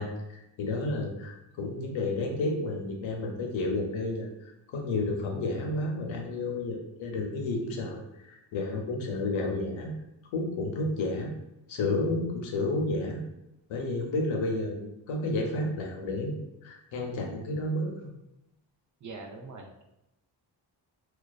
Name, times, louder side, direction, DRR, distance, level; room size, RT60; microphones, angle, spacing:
voice 1, 0.0-9.9 10.3-11.3 11.7-13.2 13.7-16.4 16.6-17.9, left 2 dB, 85° left, 1 dB, 0.6 m, -31 dB
voice 2, 19.0-19.8, right 3 dB, 40° right, 2 dB, 0.5 m, -43 dB
2.4 x 2.2 x 2.3 m, 0.88 s
cardioid pair, 85°, 45 cm